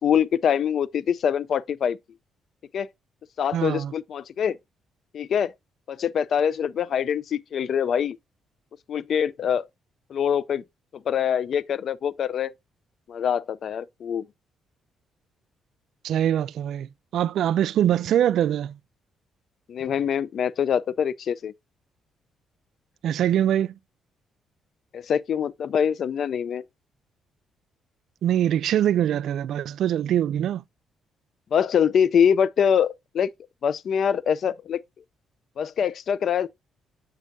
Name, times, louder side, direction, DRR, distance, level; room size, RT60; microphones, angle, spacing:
voice 1, 0.0-2.0 2.7-2.9 3.4-4.6 5.1-5.5 5.9-8.2 8.9-9.7 10.1-10.6 11.1-12.5 13.1-14.2 19.7-21.5 24.9-26.6 31.5-33.3 33.6-34.8 35.6-36.5, left 8 dB, 60° left, 0.4 m, -24 dB
voice 2, 3.5-3.9 16.0-18.7 23.0-23.7 28.2-30.6, right 10 dB, 75° right, 0.3 m, -23 dB
8.0 x 6.3 x 2.6 m
cardioid pair, 90°, 0 cm